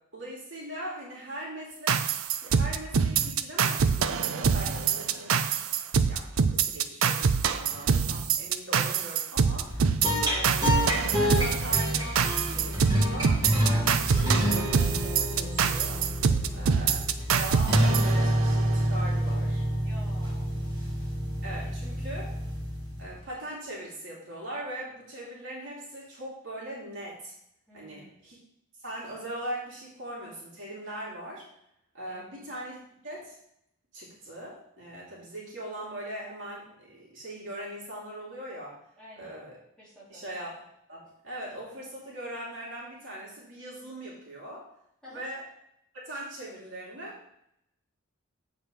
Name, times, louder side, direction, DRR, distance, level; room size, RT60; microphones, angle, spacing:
voice 1, 0.1-5.4 6.1-9.7 10.2-10.9 11.2-16.1 16.5-17.0 17.3-19.6 21.4-22.4 23.0-27.3 27.7-28.4 28.8-31.4 31.9-32.8 33.0-33.3 33.9-38.8 39.2-39.6 40.1-40.6 40.9-44.7 45.1-45.5 46.1-47.2, right 1 dB, 60° right, -5 dB, 2.8 m, -40 dB
sound 1, 1.9-18.7, right 6 dB, 85° right, 0.5 m, -25 dB
sound 2, 9.7-23.2, equal, 20° right, 2.2 m, -28 dB
voice 2, 16.3-16.7 19.8-20.5 21.5-22.0 27.7-28.1 32.1-32.3 39.0-39.4 39.8-40.2 45.0-45.2, left 1 dB, 5° left, -10 dB, 3.6 m, -50 dB
8.0 x 4.7 x 5.1 m, 0.74 s
head